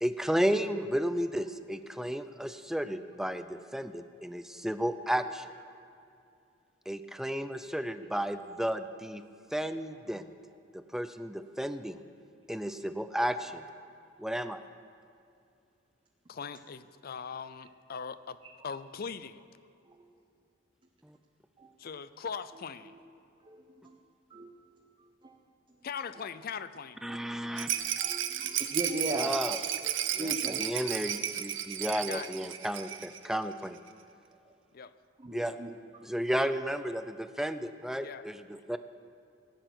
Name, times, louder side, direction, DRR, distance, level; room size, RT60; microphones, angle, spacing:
voice 1, 0.0-5.5 6.9-9.2 9.5-10.3 10.7-12.0 12.5-13.6 14.2-14.6 21.0-21.2 27.0-27.7 29.1-29.6 30.1-33.8 35.3-35.6 36.0-38.8, equal, ahead, 10 dB, 0.5 m, -33 dB
voice 2, 16.3-18.4 18.6-19.4 21.8-23.0 25.8-27.0 31.9-32.3 34.7-34.9 36.3-36.5 37.4-37.5 38.0-38.3, left 6 dB, 50° left, 14 dB, 0.5 m, -40 dB
voice 3, 23.4-24.0 24.3-24.5 25.2-25.3 27.1-27.7 28.0-29.3 29.8-30.7 35.2-35.7, right 1 dB, 25° right, 1 dB, 0.8 m, -38 dB
Rattle, 27.6-33.3 33.5-33.6 33.9-34.0, right 11 dB, 85° right, 0.8 m, -33 dB
17.5 x 9.1 x 6.0 m, 2.5 s
head